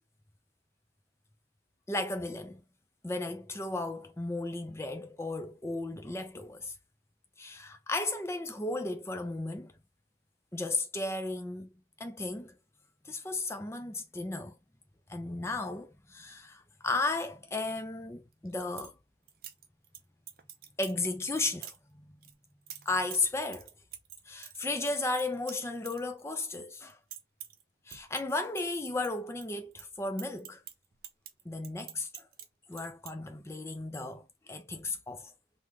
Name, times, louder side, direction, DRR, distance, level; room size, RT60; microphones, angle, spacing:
voice 1, 1.9-2.6 3.0-6.7 7.4-9.7 10.5-11.7 12.0-12.5 13.1-14.5 15.1-18.9 20.8-22.1 22.9-23.7 24.3-27.0 27.9-30.6 31.5-32.3 32.7-35.3, left 2 dB, 15° left, 0.4 m, -34 dB
sound 1, 18.3-18.9 19.3-20.0 20.3-21.0 21.3-21.8 22.2-26.6 26.8-27.6 27.9-29.5 29.7-32.5 32.7-33.1, right 10 dB, 50° right, 0.5 m, -47 dB
3.5 x 2.2 x 3.0 m
head